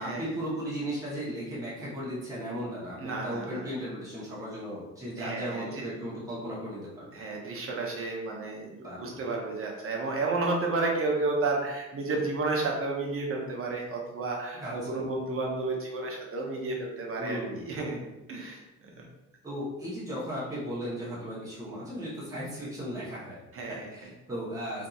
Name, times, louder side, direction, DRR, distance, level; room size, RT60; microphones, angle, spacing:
voice 1, 0.0-7.2 8.8-9.1 14.6-15.0 17.2-17.8 19.4-23.4 23.7-24.9, equal, 10° right, -8 dB, 1.0 m, -36 dB
voice 2, 3.0-3.7 5.2-5.9 7.1-19.1 23.5-24.1, right 3 dB, 45° right, -1 dB, 0.8 m, -32 dB
2.7 x 2.6 x 2.4 m, 0.98 s
cardioid pair, 90°, 30 cm